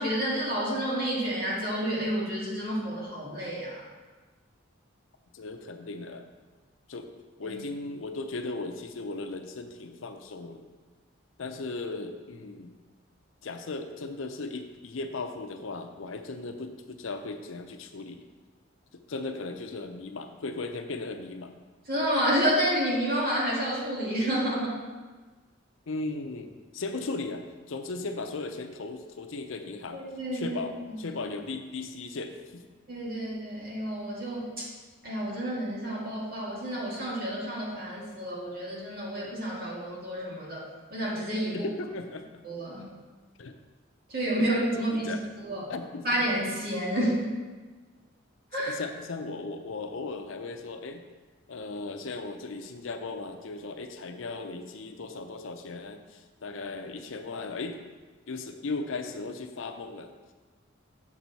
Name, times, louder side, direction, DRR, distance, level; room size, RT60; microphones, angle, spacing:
voice 1, 0.0-3.8 7.5-7.6 21.9-24.8 29.9-30.6 30.9-31.0 32.9-34.6 35.0-40.6 40.9-41.7 42.4-42.8 44.1-45.1 45.4-45.7 46.0-47.2 48.5-48.7, equal, 45° right, -6 dB, 2.1 m, -29 dB
voice 2, 5.3-6.2 6.9-7.1 7.4-10.7 11.4-12.7 13.4-18.3 18.9-21.5 25.9-30.0 30.3-32.6 41.5-42.2 43.4-43.5 44.4-44.5 44.9-45.2 45.7-46.1 48.6-51.0 51.5-57.8 58.3-60.1, left 3 dB, 75° left, 6 dB, 0.6 m, -37 dB
6.9 x 6.0 x 4.1 m, 1.3 s
head